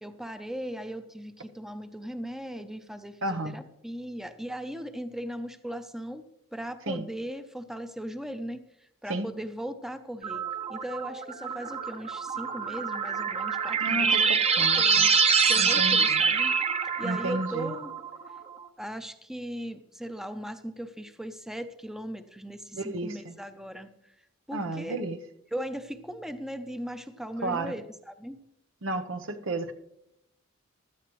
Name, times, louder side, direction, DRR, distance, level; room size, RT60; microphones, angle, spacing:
voice 1, 0.0-8.6 9.0-15.1 15.5-16.5 17.0-17.9 18.8-24.1 24.5-25.1 25.5-28.4, equal, ahead, 10 dB, 0.6 m, -38 dB
voice 2, 3.2-3.6 6.9-7.1 9.1-9.3 13.8-15.1 15.5-16.2 17.0-17.7 22.7-23.4 24.5-25.2 27.4-27.7 28.8-29.7, right 2 dB, 85° right, 8 dB, 1.0 m, -32 dB
sound 1, 10.2-18.4, right 5 dB, 30° right, 0.8 m, -25 dB
16.0 x 12.5 x 3.2 m, 0.81 s
head